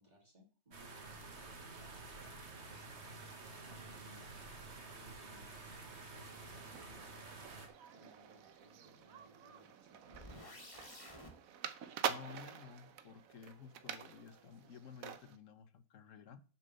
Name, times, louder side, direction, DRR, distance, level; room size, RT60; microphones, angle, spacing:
voice 1, 0.0-2.7 3.6-4.3 4.9-5.6 6.1-7.1 7.9-10.6, equal, 30° right, -1 dB, 2.6 m, -63 dB
sound 1, 0.7-7.7, right 3 dB, 50° right, 1.7 m, -50 dB
sound 2, 6.5-15.4, right 8 dB, 75° right, 1.2 m, -46 dB
sound 3, 10.1-11.3, left 1 dB, 25° left, 1.7 m, -52 dB
voice 2, 12.1-16.4, left 6 dB, 65° left, 13 dB, 1.1 m, -54 dB
7.6 x 5.7 x 6.6 m, 0.38 s
omnidirectional pair, 1.5 m